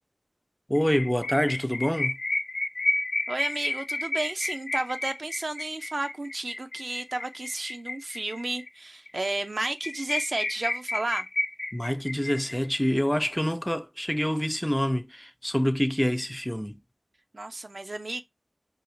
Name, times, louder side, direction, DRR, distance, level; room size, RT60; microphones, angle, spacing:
sound 1, 0.7-8.7 9.1-9.2 9.4-9.5 9.8-12.9, left 2 dB, 80° left, 0.6 m, -31 dB
voice 1, 0.7-2.2 11.7-16.8, equal, 5° left, 0.3 m, -26 dB
voice 2, 3.3-11.3 17.3-18.2, right 2 dB, 65° right, 0.5 m, -32 dB
4.6 x 2.5 x 2.5 m
wide cardioid pair, 50°, 0 cm